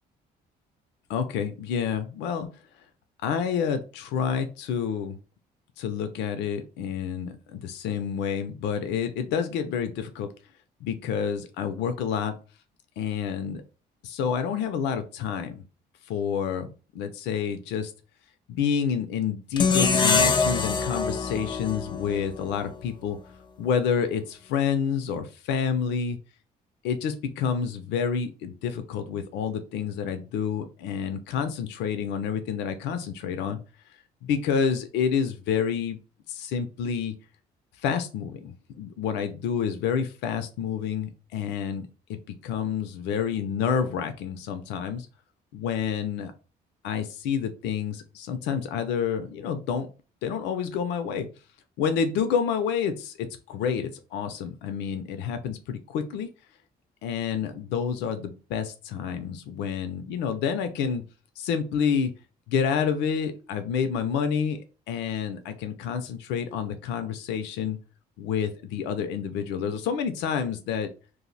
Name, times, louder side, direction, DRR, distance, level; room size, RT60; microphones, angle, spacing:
voice 1, 1.1-2.5 3.2-5.2 5.8-10.3 10.8-12.3 13.0-13.6 14.0-15.6 16.1-17.9 18.5-23.2 23.6-26.2 26.8-33.6 34.2-36.0 36.3-37.1 37.8-45.1 45.5-46.3 46.8-49.9 50.2-51.3 51.8-56.3 57.0-61.0 61.4-62.1 62.5-64.6 64.9-67.8 68.2-70.9, left 7 dB, 85° left, 8 dB, 0.4 m, -28 dB
sound 1, 19.6-22.7, left 4 dB, 25° left, 0.4 m, -24 dB
2.5 x 2.0 x 3.8 m, 0.34 s
cardioid pair, 85°, 18 cm